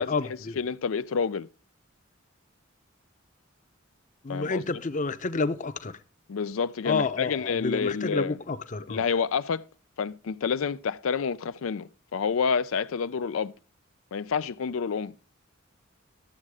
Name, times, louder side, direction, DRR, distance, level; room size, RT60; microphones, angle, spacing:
voice 1, 0.0-0.6 4.2-6.0 6.8-9.1, left 4 dB, 40° left, 0.8 m, -29 dB
voice 2, 0.6-1.5 4.3-4.6 6.3-8.4 8.9-9.6 10.0-13.5 14.1-15.1, left 6 dB, 90° left, 0.4 m, -28 dB
13.0 x 7.5 x 4.8 m
head